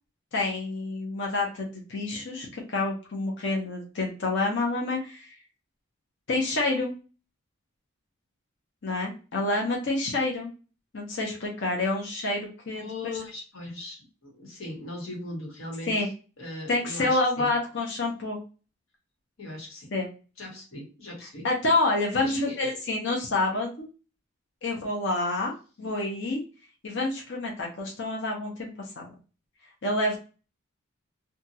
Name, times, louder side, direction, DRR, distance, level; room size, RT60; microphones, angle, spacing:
voice 1, 0.3-5.4 6.3-6.9 8.8-10.5 10.9-12.9 15.9-16.1 16.7-18.4 19.9-20.1 21.4-23.9 24.6-26.4 26.8-28.7 29.0-29.1 29.8-30.2, left 2 dB, 60° left, -1 dB, 0.8 m, -28 dB
voice 2, 12.7-15.9 16.4-17.5 19.4-19.9 20.4-21.5 22.2-22.7, left 1 dB, 90° left, -2 dB, 1.3 m, -38 dB
2.8 x 2.4 x 2.7 m, 0.34 s
head